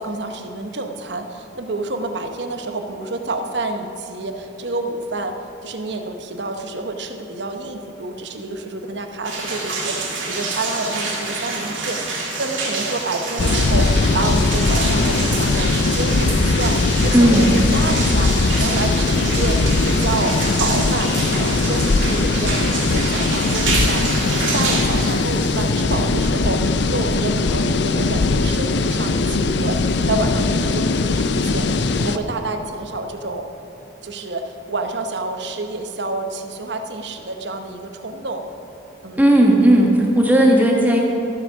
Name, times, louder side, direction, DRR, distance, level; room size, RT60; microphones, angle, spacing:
voice 1, 0.0-18.3 18.6-33.5 34.0-38.4 39.0-39.2, right 2 dB, 60° right, 5 dB, 0.9 m, -28 dB
sound 1, 9.2-26.5, right 3 dB, 80° right, 2.3 m, -27 dB
sound 2, 13.4-32.2, left 3 dB, 60° left, 0.5 m, -20 dB
voice 2, 17.1-17.5 39.1-41.0, right 1 dB, 10° right, -1 dB, 1.4 m, -14 dB
13.5 x 8.1 x 6.1 m, 2.7 s
head